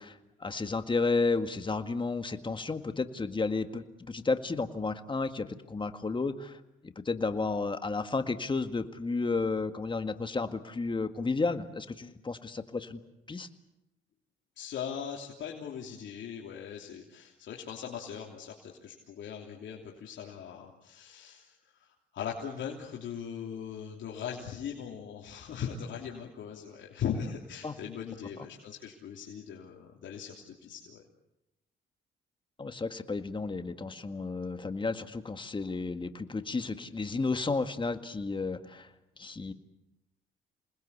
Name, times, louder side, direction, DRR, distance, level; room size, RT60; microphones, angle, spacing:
voice 1, 0.0-6.6 6.8-13.0 13.3-13.5 27.6-27.8 32.6-38.9 39.2-39.5, left 3 dB, 25° left, 8 dB, 1.9 m, -32 dB
voice 2, 14.6-31.0, left 7 dB, 70° left, -2 dB, 3.2 m, -40 dB
27.5 x 20.5 x 8.4 m, 0.91 s
cardioid pair, 90°, 20 cm